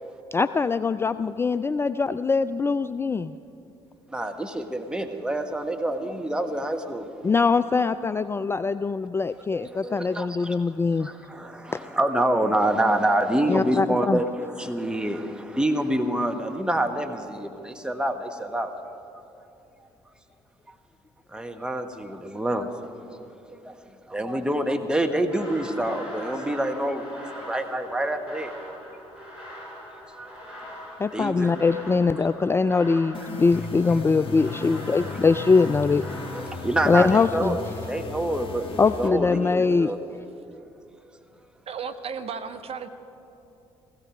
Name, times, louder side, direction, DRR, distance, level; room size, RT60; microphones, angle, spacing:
voice 1, 0.3-3.3 7.2-11.1 11.7-11.8 13.5-14.2 31.0-36.0 36.9-37.6 38.8-39.9, left 4 dB, 15° left, 13 dB, 0.3 m, -22 dB
voice 2, 4.1-7.1 9.6-10.6 11.0-18.7 21.3-22.7 23.2-23.7 24.1-27.1 27.3-28.5 30.1-31.5 36.3-37.6 37.9-40.0, right 1 dB, 5° right, 5 dB, 1.4 m, -27 dB
sound 1, 25.3-36.5, equal, 85° right, 4.7 m, -42 dB
sound 2, 33.1-39.1, left 3 dB, 40° left, 2.1 m, -36 dB
voice 3, 41.7-42.9, right 6 dB, 45° right, 10 dB, 0.9 m, -34 dB
16.5 x 15.5 x 5.1 m, 2.8 s
figure-of-eight pair, 50°, 14 cm